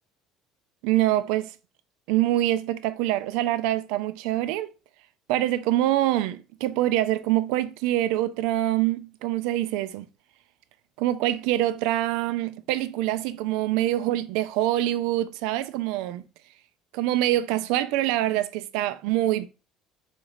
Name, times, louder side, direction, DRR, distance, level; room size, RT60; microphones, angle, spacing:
voice 1, 0.8-1.5 2.1-4.7 5.3-10.1 11.0-16.2 16.9-19.5, right 14 dB, 80° right, 0.4 m, -25 dB
4.0 x 3.3 x 3.9 m
cardioid pair, 135°, 0 cm